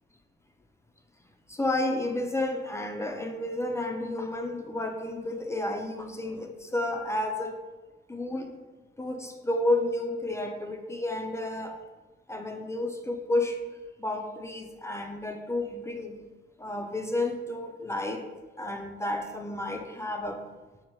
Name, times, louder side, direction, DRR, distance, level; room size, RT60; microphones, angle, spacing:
voice 1, 1.5-7.6 8.1-8.5 9.0-11.7 12.3-13.6 14.0-16.2 16.6-18.2 18.6-20.4, left 2 dB, 15° left, 4 dB, 0.3 m, -31 dB
5.2 x 2.0 x 3.0 m, 1.2 s
cardioid pair, 90°, 20 cm